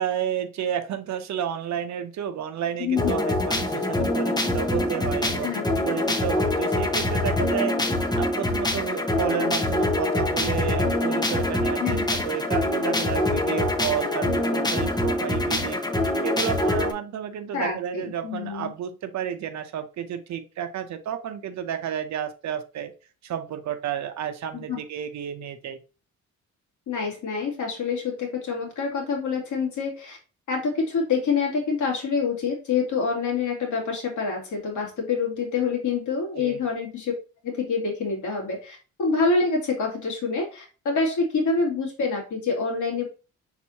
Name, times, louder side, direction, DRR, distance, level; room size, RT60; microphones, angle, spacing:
voice 1, 0.0-7.8 8.2-15.8 16.2-22.9 23.2-25.8 36.4-36.6, right 9 dB, 65° right, 9 dB, 0.8 m, -31 dB
voice 2, 2.8-3.2 5.4-5.6 11.7-12.1 17.5-18.7 24.5-24.8 26.9-30.2 30.5-37.1 37.4-43.1, left 4 dB, 75° left, 0 dB, 2.3 m, -26 dB
sound 1, 3.0-16.9, left 1 dB, 15° left, 0.8 m, -24 dB
4.5 x 4.0 x 2.8 m, 0.34 s
cardioid pair, 90°, 30 cm